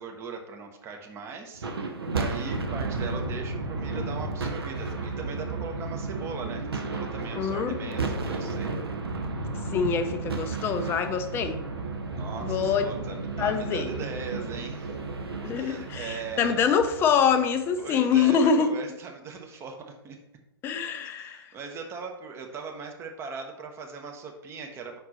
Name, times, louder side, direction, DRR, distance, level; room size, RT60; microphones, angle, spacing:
voice 1, 0.0-8.7 12.1-15.0 15.5-16.6 17.8-20.2 21.2-25.0, right 5 dB, 20° right, 0.8 m, -39 dB
sound 1, 1.5-17.9, right 3 dB, 70° right, 0.8 m, -33 dB
voice 2, 7.4-7.7 9.7-11.6 12.4-12.8 13.4-13.9 15.4-18.7 20.6-21.5, left 6 dB, 15° left, 0.4 m, -25 dB
5.2 x 4.3 x 4.2 m
figure-of-eight pair, 110°, 13 cm